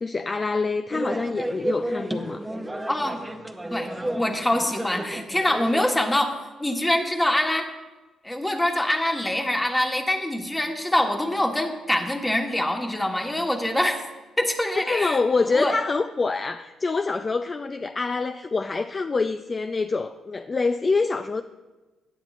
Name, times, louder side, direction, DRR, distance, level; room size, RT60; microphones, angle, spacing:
voice 1, 0.0-2.4 14.8-21.4, left 4 dB, 30° left, 9 dB, 0.4 m, -26 dB
sound 1, 0.9-5.9, right 1 dB, 10° right, 0.8 m, -32 dB
voice 2, 2.9-3.2 3.7-7.7 8.2-14.0 14.4-15.2 15.5-15.7, left 1 dB, 10° left, 3 dB, 1.3 m, -24 dB
16.5 x 9.6 x 2.5 m, 1.2 s
cardioid pair, 90°, 0 cm